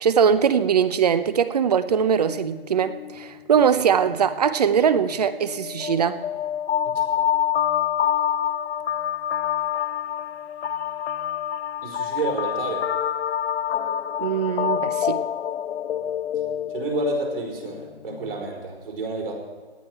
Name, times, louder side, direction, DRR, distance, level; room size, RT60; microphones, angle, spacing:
voice 1, 0.0-6.2 14.2-15.2, right 7 dB, 40° right, 14 dB, 0.7 m, -21 dB
sound 1, 2.2-3.3 3.6-3.8 4.1-18.4, left 9 dB, 90° left, 0.5 m, -27 dB
voice 2, 11.8-12.9 16.7-19.3, right 3 dB, 60° right, -1 dB, 4.8 m, -29 dB
18.0 x 10.5 x 4.6 m, 1.4 s
hypercardioid pair, 165°, 32 cm